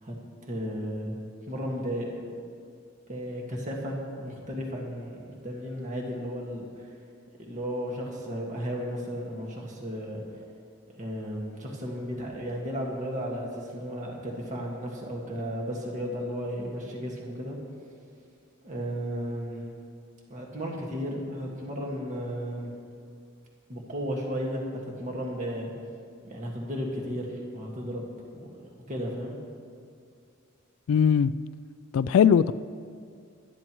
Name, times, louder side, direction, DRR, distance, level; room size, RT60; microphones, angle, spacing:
voice 1, 0.0-1.2 1.4-2.3 3.1-6.9 7.4-10.4 10.9-17.6 18.6-19.7 20.3-22.8 23.7-25.7 26.2-29.4, equal, 40° right, -2 dB, 1.8 m, -34 dB
voice 2, 30.9-31.3 31.9-32.5, left 7 dB, 85° left, 14 dB, 0.3 m, -20 dB
21.0 x 12.0 x 3.1 m, 2.3 s
head